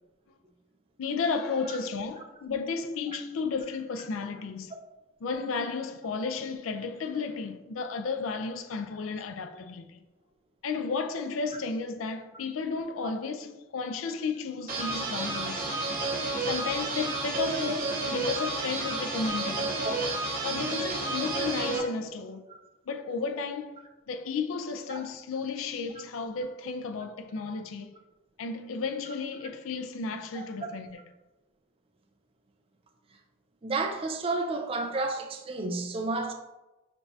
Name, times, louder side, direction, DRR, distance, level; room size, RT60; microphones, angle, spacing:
voice 1, 1.0-4.7 5.2-10.0 10.6-15.7 16.4-19.8 20.4-22.5 22.9-28.0 28.4-31.0, left 4 dB, 75° left, 0.4 m, -33 dB
sound 1, 14.7-21.8, right 2 dB, 45° right, 0.9 m, -31 dB
voice 2, 33.6-36.3, right 3 dB, 25° right, 0.4 m, -31 dB
5.9 x 2.3 x 2.7 m
head